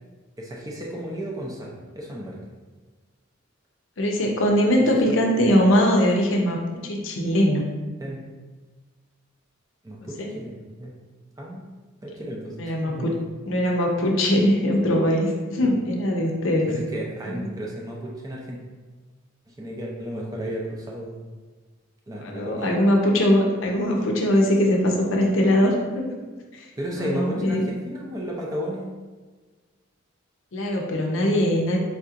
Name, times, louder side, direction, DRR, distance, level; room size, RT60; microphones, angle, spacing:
voice 1, 0.4-2.4 4.8-5.1 8.0-8.3 9.8-11.0 11.4-11.6 12.0-13.1 15.6-15.7 16.7-18.6 19.5-21.2 22.1-22.7 26.8-28.9, equal, 15° right, -2 dB, 0.5 m, -33 dB
voice 2, 4.0-7.7 10.2-10.3 12.6-13.1 13.5-16.7 17.3-17.5 22.2-26.1 26.9-27.6 30.5-31.8, equal, 65° left, 0 dB, 0.6 m, -21 dB
4.5 x 2.8 x 2.4 m, 1.4 s
head